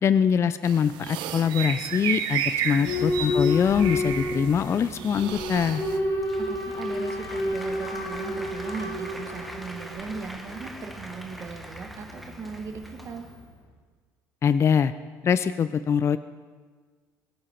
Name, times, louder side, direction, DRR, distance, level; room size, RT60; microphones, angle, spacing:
voice 1, 0.0-5.8 14.4-14.9 15.2-16.2, left 7 dB, 35° left, 14 dB, 0.4 m, -23 dB
sound 1, 0.6-6.0, right 9 dB, 70° right, 1.0 m, -32 dB
voice 2, 2.7-3.1 6.4-13.3, right 5 dB, 40° right, 6 dB, 1.5 m, -38 dB
Boat Water vehicle / Alarm, 2.8-13.5, left 2 dB, 75° left, 3.9 m, -31 dB
Applause, 5.9-13.5, equal, ahead, 1.4 m, -43 dB
22.0 x 8.8 x 4.4 m, 1.5 s
supercardioid pair, 95°, 8 cm